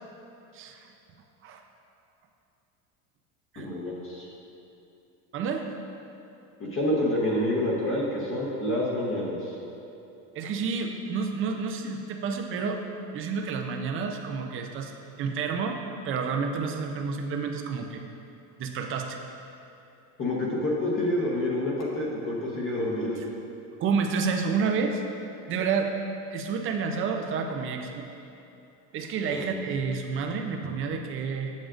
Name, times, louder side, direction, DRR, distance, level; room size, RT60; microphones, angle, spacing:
voice 1, 0.5-0.9 1.4-1.6 3.5-3.7 5.3-5.7 10.3-12.8 13.1-14.9 15.2-15.8 16.0-18.0 18.6-19.2 23.8-25.0 25.5-26.0 26.3-28.1 28.9-31.5, right 5 dB, 30° right, 4 dB, 0.5 m, -29 dB
voice 2, 3.6-4.3 6.6-9.5 20.2-23.2 29.3-29.4, left 1 dB, 30° left, -4 dB, 1.1 m, -28 dB
7.5 x 7.2 x 2.5 m, 2.9 s
supercardioid pair, 130°, 43 cm